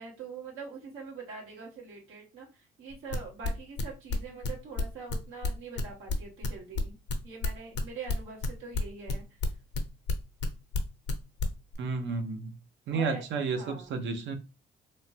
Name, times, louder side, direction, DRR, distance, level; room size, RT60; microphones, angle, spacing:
voice 1, 0.0-7.0 7.2-9.2 12.9-13.2 13.5-14.0, right 5 dB, 90° right, 1.3 m, -44 dB
sound 1, 2.9-6.5 6.8-10.5 10.7-11.1 11.4-11.8, left 4 dB, 60° left, 0.6 m, -31 dB
voice 2, 11.8-12.6 12.9-14.4, right 4 dB, 70° right, 0.7 m, -31 dB
3.1 x 2.1 x 2.7 m
cardioid pair, 90°, 20 cm